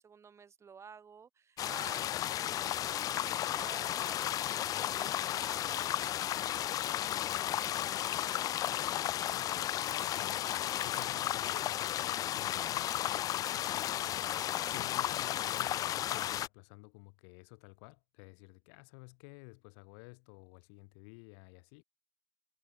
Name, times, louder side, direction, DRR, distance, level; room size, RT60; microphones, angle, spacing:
voice 1, 0.0-8.4, right 6 dB, 15° right, 6.7 m, -54 dB
sound 1, 1.6-16.5, left 12 dB, 20° left, 0.3 m, -34 dB
voice 2, 9.7-21.8, left 37 dB, 55° left, 2.2 m, -53 dB
cardioid pair, 175°, 17 cm